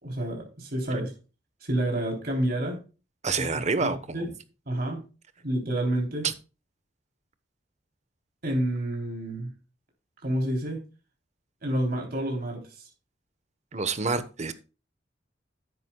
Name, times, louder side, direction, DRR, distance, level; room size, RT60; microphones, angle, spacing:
voice 1, 0.0-1.1 1.6-2.8 3.4-4.3 4.6-5.0 5.4-6.3 8.4-9.5 10.2-10.8 11.6-12.9, right 1 dB, 55° right, 3.5 m, -29 dB
voice 2, 3.2-4.3 13.7-14.5, right 4 dB, 40° right, 1.1 m, -28 dB
12.5 x 10.0 x 2.3 m
head